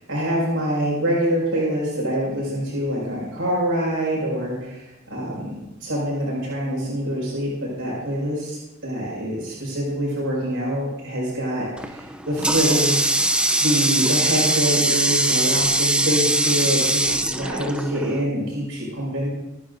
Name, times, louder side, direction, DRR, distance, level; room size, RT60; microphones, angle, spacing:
voice 1, 0.0-13.1 13.6-19.3, equal, 75° right, -6 dB, 5.6 m, -25 dB
Water tap faucet, 11.8-18.3, right 1 dB, 5° right, 0.6 m, -21 dB
25.0 x 10.5 x 2.7 m, 0.97 s
head